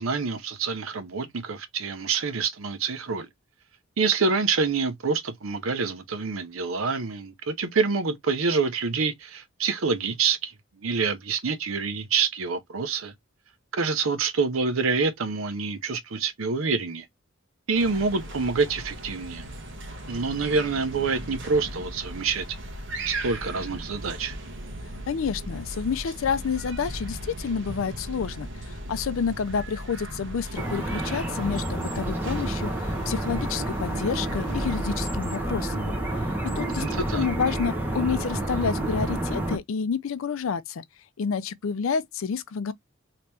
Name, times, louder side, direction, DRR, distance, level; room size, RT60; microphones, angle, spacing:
voice 1, 0.0-3.3 4.0-10.5 10.8-13.1 13.7-17.1 17.7-19.5 20.1-22.5 23.1-24.4 36.7-37.3, right 4 dB, 90° right, 0.7 m, -27 dB
sound 1, 17.7-35.1, right 1 dB, 65° right, 1.0 m, -38 dB
voice 2, 25.1-35.9 36.6-36.8 37.1-40.8 41.2-42.7, left 6 dB, 70° left, 0.4 m, -29 dB
sound 2, 30.5-39.6, right 1 dB, 10° right, 1.0 m, -29 dB
3.0 x 2.9 x 3.3 m
head